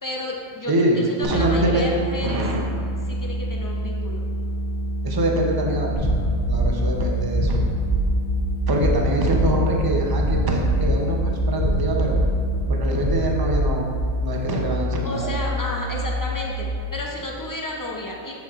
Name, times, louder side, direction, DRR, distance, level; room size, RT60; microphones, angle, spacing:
voice 1, 0.0-2.4 3.1-4.2 15.0-18.3, left 1 dB, 30° left, -2 dB, 0.3 m, -32 dB
voice 2, 0.7-1.9 2.2-2.6 5.0-6.2 6.5-7.6 8.7-12.2 12.7-13.9 14.2-15.4, right 1 dB, 25° right, 0 dB, 0.5 m, -24 dB
sound 1, 1.2-12.7, right 1 dB, 80° left, 1.5 m, -27 dB
sound 2, 5.9-16.8, left 1 dB, 5° right, 1.3 m, -28 dB
sound 3, 5.9-14.2, right 2 dB, 45° right, 1.7 m, -26 dB
7.5 x 7.0 x 2.4 m, 2.2 s
omnidirectional pair, 1.3 m